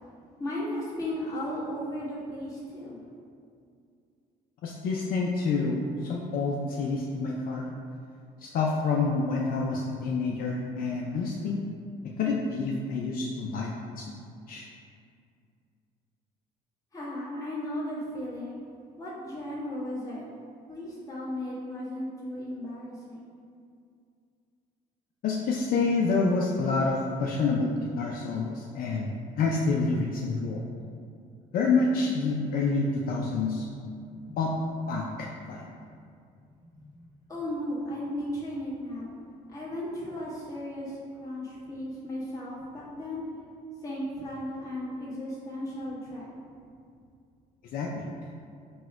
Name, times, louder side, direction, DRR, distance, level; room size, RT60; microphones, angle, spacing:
voice 1, 0.4-3.0 16.9-18.6 19.0-20.3 20.7-23.3 34.0-34.4 36.7-36.9 37.3-39.1 39.5-43.2 43.8-46.4, left 1 dB, 20° left, -8 dB, 1.3 m, -35 dB
voice 2, 4.6-7.7 8.4-11.6 12.2-13.7 14.0-14.2 14.5-14.7 25.2-29.1 29.4-30.6 31.5-33.7 34.4-34.5 34.9-35.6 47.7-48.1, left 4 dB, 60° left, -2 dB, 0.4 m, -28 dB
4.1 x 2.2 x 4.5 m, 2.4 s
cardioid pair, 110°, 17 cm